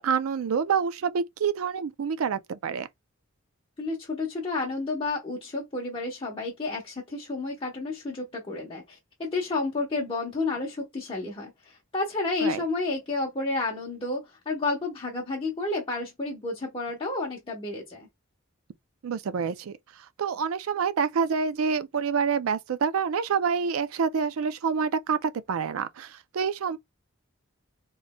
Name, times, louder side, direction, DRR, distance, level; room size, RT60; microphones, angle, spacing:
voice 1, 0.0-2.9 12.4-12.6 19.0-19.8 20.2-26.8, right 6 dB, 90° right, 0.4 m, -27 dB
voice 2, 3.8-18.1, left 3 dB, 25° left, 0.9 m, -31 dB
4.2 x 3.0 x 2.2 m
head